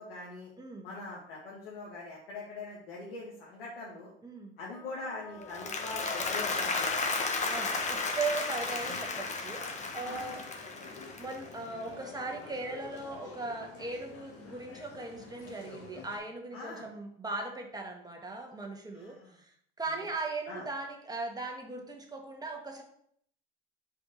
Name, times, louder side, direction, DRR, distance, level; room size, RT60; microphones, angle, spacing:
voice 1, 0.0-0.5 0.8-4.1 4.6-7.2 10.0-10.4 16.5-16.9 18.9-19.4 20.0-20.1 20.5-20.7, left 3 dB, 80° left, -5 dB, 2.0 m, -43 dB
voice 2, 0.6-0.9 4.2-4.5 7.5-9.6 9.9-10.4 11.2-19.5 19.8-22.8, right 3 dB, 15° right, 2 dB, 1.6 m, -38 dB
Wind instrument woodwind instrument, 4.7-9.1, left 3 dB, 10° left, 0.6 m, -48 dB
Applause, 5.4-11.7, left 3 dB, 25° left, 1.2 m, -34 dB
sound 1, 8.5-16.2, left 4 dB, 50° left, 1.8 m, -49 dB
5.1 x 4.5 x 5.2 m, 0.64 s
hypercardioid pair, 80°, 30 cm